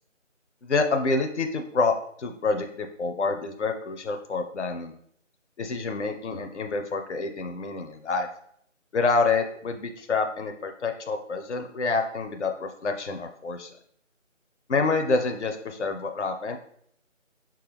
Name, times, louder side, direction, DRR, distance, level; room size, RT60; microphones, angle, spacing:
voice 1, 0.6-5.0 5.6-8.3 8.9-13.8 14.7-16.6, left 4 dB, 65° left, 6 dB, 0.5 m, -27 dB
5.4 x 2.3 x 3.3 m, 0.66 s
figure-of-eight pair, 170°, 39 cm